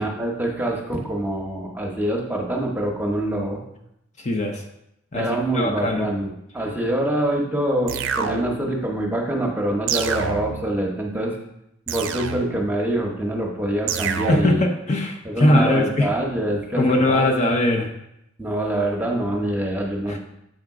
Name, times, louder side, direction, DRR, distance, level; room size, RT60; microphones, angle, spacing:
voice 1, 0.0-3.6 5.1-11.4 11.9-14.6 15.2-17.4 18.4-20.2, right 1 dB, 10° right, 0 dB, 1.0 m, -25 dB
voice 2, 4.2-4.6 5.1-5.3 5.5-6.1 14.3-16.1 16.8-17.9 20.1-20.2, left 1 dB, 35° left, 2 dB, 0.7 m, -20 dB
sound 1, 7.9-8.8 9.9-10.8 11.9-12.8 13.9-14.8, right 6 dB, 85° right, 0.5 m, -28 dB
7.6 x 3.6 x 4.8 m, 0.81 s
head